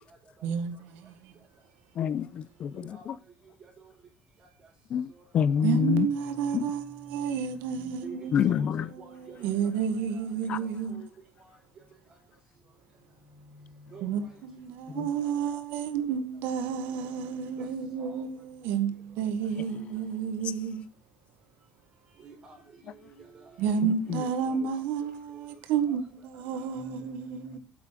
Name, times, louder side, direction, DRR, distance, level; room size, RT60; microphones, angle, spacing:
voice 1, 0.4-1.3 5.6-8.3 8.9-11.0 14.0-20.8 23.6-27.6, right 7 dB, 75° right, 1.7 m, -31 dB
voice 2, 2.0-3.1 4.9-6.1 6.5-6.6 8.3-8.8 10.5-10.6 14.9-15.1 24.1-24.2, left 8 dB, 35° left, 0.6 m, -27 dB
voice 3, 2.7-3.1 3.6-3.9 5.1-5.2 5.6-5.7 7.7-8.7 9.0-9.7 10.1-10.3 10.6-11.1 11.4-11.5 13.3-14.3 17.6-17.7 18.0-18.3 19.1-19.2 19.7-19.8 22.2-23.7 24.0-24.7 25.0-25.5 25.8-26.0 26.8-26.9, right 4 dB, 30° right, 3.8 m, -50 dB
8.7 x 7.6 x 6.2 m
cardioid pair, 175°, 3 cm